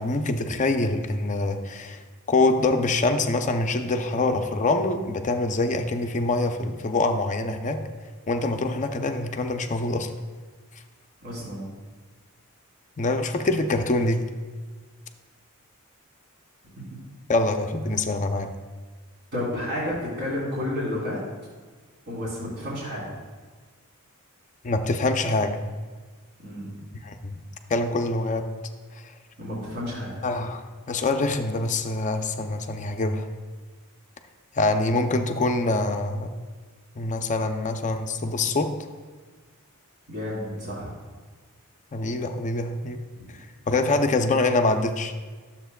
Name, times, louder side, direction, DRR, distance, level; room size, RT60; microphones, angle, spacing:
voice 1, 0.0-2.0 2.3-7.8 8.3-10.1 13.0-14.2 17.3-18.5 24.6-25.6 27.0-27.4 27.7-28.5 30.2-33.3 34.6-36.3 37.0-38.7 41.9-43.0 43.7-45.1, left 2 dB, 35° left, 6 dB, 0.5 m, -25 dB
voice 2, 11.2-11.7 19.3-21.2 22.1-23.0 26.4-26.7 29.4-30.1 40.1-40.9 43.1-43.3, left 1 dB, 50° right, -5 dB, 2.7 m, -31 dB
12.5 x 7.2 x 2.3 m, 1.4 s
head